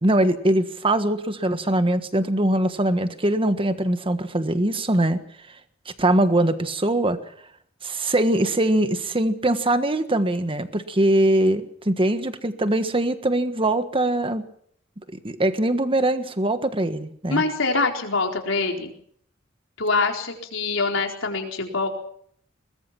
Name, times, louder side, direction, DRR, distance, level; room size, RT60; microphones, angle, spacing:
voice 1, 0.0-5.2 6.0-7.2 7.8-14.4 15.2-17.4, right 1 dB, 30° right, 10 dB, 1.5 m, -22 dB
voice 2, 17.3-18.9 19.8-21.9, left 3 dB, 80° left, 2 dB, 4.2 m, -24 dB
22.0 x 20.5 x 6.0 m, 0.65 s
head